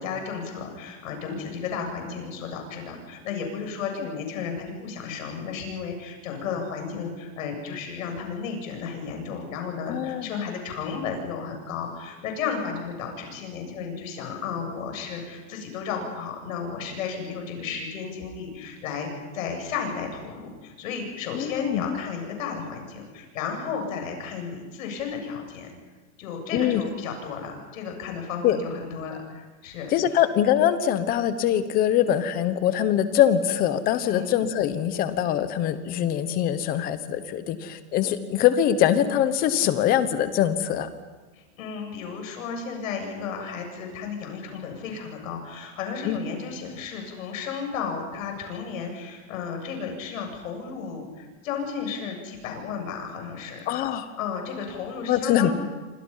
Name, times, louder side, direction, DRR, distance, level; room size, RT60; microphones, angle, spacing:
voice 1, 0.0-19.1 19.3-25.7 26.2-29.9 34.1-34.3 41.6-53.7 54.2-55.5, left 6 dB, 60° left, 3 dB, 8.0 m, -33 dB
voice 2, 9.9-10.3 21.3-22.0 26.5-26.8 28.4-28.6 29.9-40.9 46.0-46.2 53.7-54.1 55.1-55.5, left 10 dB, 20° left, 11 dB, 1.1 m, -23 dB
29.0 x 25.5 x 5.7 m, 1.2 s
supercardioid pair, 170°, 45 cm